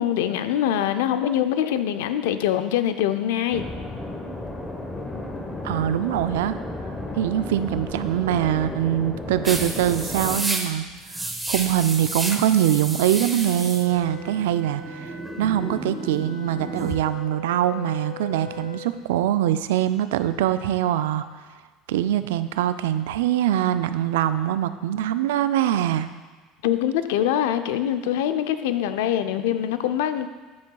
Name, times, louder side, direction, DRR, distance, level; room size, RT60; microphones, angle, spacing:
voice 1, 0.0-3.6 26.6-30.3, left 10 dB, 85° left, 10 dB, 0.4 m, -24 dB
sound 1, 3.5-10.4, left 2 dB, 15° left, 1.0 m, -33 dB
voice 2, 5.6-6.6 7.2-10.9 11.1-21.2 21.9-26.1, right 11 dB, 90° right, 12 dB, 0.3 m, -23 dB
sound 2, 9.4-16.9, right 1 dB, 10° right, 0.8 m, -32 dB
Wind instrument woodwind instrument, 13.4-18.9, left 4 dB, 30° left, 2.3 m, -41 dB
9.3 x 7.3 x 2.3 m, 1.3 s
supercardioid pair, 100°, 0 cm